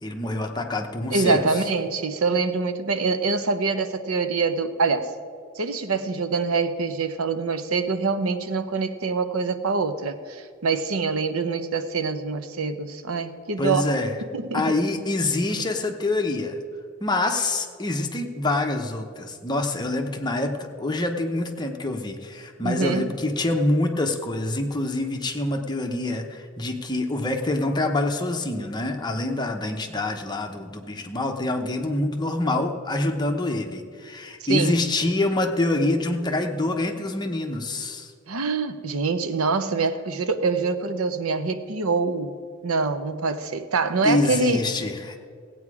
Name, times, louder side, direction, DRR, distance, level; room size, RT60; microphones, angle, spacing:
voice 1, 0.0-1.4 13.6-14.1 14.5-16.6 17.0-38.1 44.0-45.1, left 2 dB, 20° left, 3 dB, 0.8 m, -26 dB
voice 2, 1.1-5.1 5.6-13.9 14.3-14.7 15.5-15.7 22.6-23.1 34.5-34.8 38.3-42.4 42.6-44.6, right 4 dB, 80° right, 10 dB, 0.7 m, -25 dB
16.5 x 8.4 x 4.8 m, 2.1 s
head